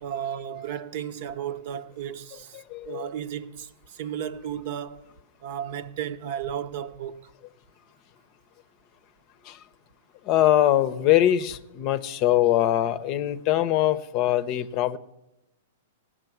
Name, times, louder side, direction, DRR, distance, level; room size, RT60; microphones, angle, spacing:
voice 1, 0.0-5.1 5.4-7.2, right 9 dB, 55° right, 0.8 m, -34 dB
voice 2, 2.7-3.1 9.4-9.6 10.3-15.0, left 13 dB, 40° left, 0.7 m, -22 dB
16.5 x 6.3 x 9.2 m
hypercardioid pair, 125°, 0 cm